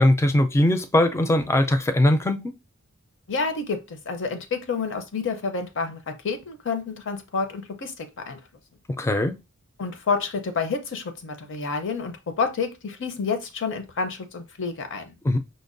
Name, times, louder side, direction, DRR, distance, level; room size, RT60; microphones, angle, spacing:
voice 1, 0.0-2.5 9.0-9.4 15.2-15.4, left 1 dB, 10° left, 0.3 m, -20 dB
voice 2, 3.3-6.0 6.2-8.4 9.8-15.1, left 4 dB, 60° left, 0.6 m, -29 dB
5.1 x 2.1 x 2.5 m
head